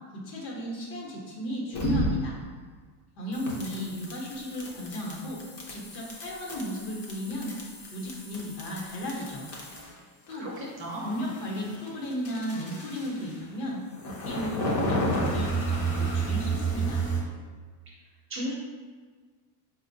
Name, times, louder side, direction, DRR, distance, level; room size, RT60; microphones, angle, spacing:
voice 1, 0.1-2.4 3.2-5.4 5.7-7.6 7.9-9.5 10.3-10.5 11.0-17.0, equal, 70° left, -3 dB, 1.1 m, -35 dB
sound 1, 1.7-2.4 3.3-10.0 10.3-13.4 13.9-17.2, right 2 dB, 30° left, 0.5 m, -32 dB
voice 2, 10.3-11.2 18.3-18.5, equal, 25° right, -4 dB, 0.5 m, -35 dB
4.3 x 2.4 x 2.6 m, 1.5 s
cardioid pair, 150°, 49 cm